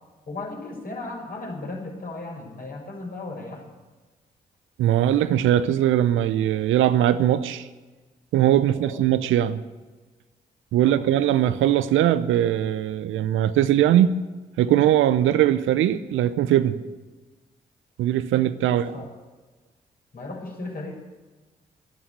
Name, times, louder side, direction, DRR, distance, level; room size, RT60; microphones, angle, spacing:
voice 1, 0.3-3.7 8.7-9.0 10.8-11.1 18.7-19.1 20.1-20.9, left 2 dB, 45° left, -1 dB, 5.9 m, -36 dB
voice 2, 4.8-7.7 8.3-9.6 10.7-14.2 14.6-16.8 18.0-19.0, right 11 dB, 75° right, 13 dB, 0.7 m, -20 dB
13.0 x 11.5 x 8.5 m, 1.3 s
hypercardioid pair, 40°, 21 cm